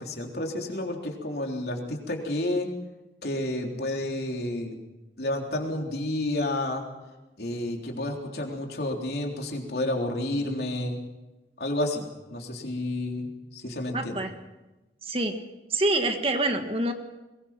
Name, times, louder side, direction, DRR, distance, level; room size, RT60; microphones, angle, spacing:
voice 1, 0.0-2.7 3.2-4.8 5.2-6.8 7.4-11.0 11.6-12.0 12.3-14.2, left 1 dB, 60° left, 1 dB, 3.6 m, -30 dB
voice 2, 13.9-14.3 15.0-15.4 15.7-16.9, right 2 dB, 30° right, 6 dB, 1.6 m, -26 dB
22.0 x 21.0 x 5.9 m, 1.0 s
head